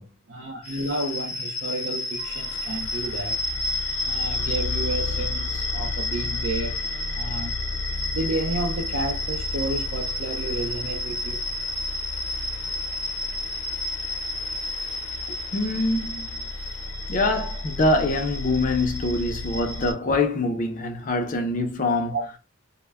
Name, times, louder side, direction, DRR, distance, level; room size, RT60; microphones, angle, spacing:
voice 1, 0.0-3.4 4.0-6.8 7.1-7.6 8.1-11.4 12.3-12.5 22.1-22.2, right 2 dB, 60° right, 0.5 m, -31 dB
sound 1, 0.6-19.9, left 2 dB, 90° left, 0.7 m, -30 dB
voice 2, 15.5-16.2 17.1-22.1, left 2 dB, 40° left, 0.5 m, -24 dB
2.1 x 2.1 x 3.3 m
head